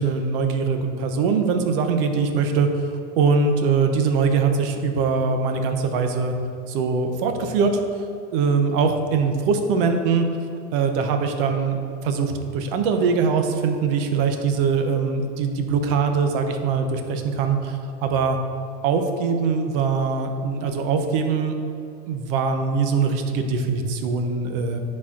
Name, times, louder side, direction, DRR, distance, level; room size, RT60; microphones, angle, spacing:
voice 1, 0.0-2.7 3.2-6.3 6.7-7.8 8.3-10.3 10.7-18.4 18.8-21.6 22.1-24.8, right 5 dB, 50° right, 5 dB, 0.7 m, -22 dB
10.0 x 4.2 x 2.5 m, 2.5 s
supercardioid pair, 160°, 35 cm